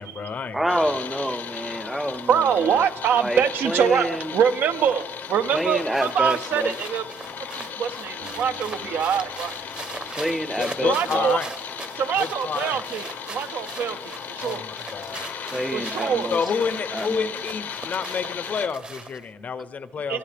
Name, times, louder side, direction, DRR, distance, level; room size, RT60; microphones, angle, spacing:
voice 1, 0.0-0.9 10.6-11.5 12.2-12.8 14.4-15.3 16.3-20.2, left 6 dB, 50° left, 14 dB, 0.5 m, -29 dB
voice 2, 0.5-2.8 3.1-4.4 5.5-6.7 10.1-11.3 15.5-16.4 16.9-17.3, equal, 5° right, 14 dB, 0.5 m, -27 dB
sound 1, 0.7-18.7, left 7 dB, 85° left, 0.8 m, -36 dB
voice 3, 2.3-7.1 7.5-9.6 10.8-11.4 12.0-14.6 15.7-16.3 20.1-20.2, right 8 dB, 85° right, 11 dB, 0.5 m, -24 dB
sound 2, 5.2-19.3, right 3 dB, 30° right, 0.8 m, -41 dB
sound 3, 8.2-11.4, right 3 dB, 60° right, 0.9 m, -49 dB
22.5 x 9.4 x 3.3 m, 1.2 s
cardioid pair, 105°, 3 cm